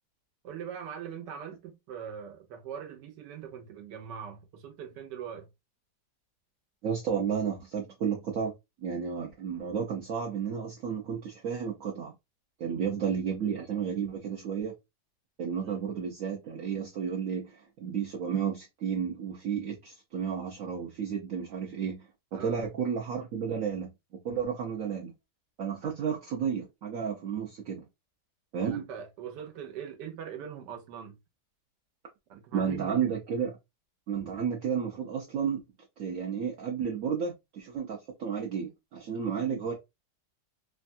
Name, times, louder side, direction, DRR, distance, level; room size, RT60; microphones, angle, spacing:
voice 1, 0.4-5.5 12.6-13.0 15.6-15.9 22.3-22.6 25.8-25.9 28.6-31.2 32.3-33.2, right 8 dB, 80° right, 1.3 m, -42 dB
voice 2, 6.8-8.5 8.8-12.1 12.6-14.7 15.4-23.9 24.2-25.1 25.6-27.8 28.5-28.8 32.5-33.5 34.1-35.6 36.0-39.7, right 7 dB, 65° right, 0.9 m, -32 dB
3.3 x 2.2 x 2.5 m
omnidirectional pair, 1.8 m